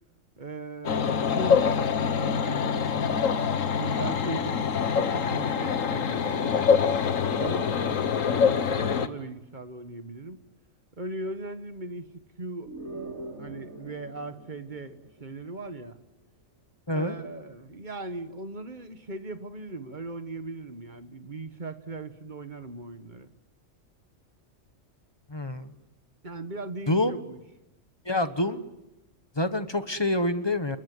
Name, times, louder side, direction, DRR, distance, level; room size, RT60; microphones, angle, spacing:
voice 1, 0.4-1.7 2.0-3.4 3.8-4.6 4.9-6.6 7.4-10.4 11.0-12.1 12.4-12.7 13.4-16.0 16.9-23.3 26.2-27.4, right 2 dB, 35° right, 9 dB, 1.6 m, -38 dB
sound 1, 0.8-9.1, left 6 dB, 75° left, 1.6 m, -25 dB
sound 2, 12.7-15.6, right 2 dB, 85° right, 4.5 m, -42 dB
voice 2, 25.3-25.7 26.9-27.1 28.1-28.7 29.4-30.8, left 1 dB, 20° left, 10 dB, 1.2 m, -26 dB
29.5 x 21.0 x 9.5 m, 0.97 s
omnidirectional pair, 1.4 m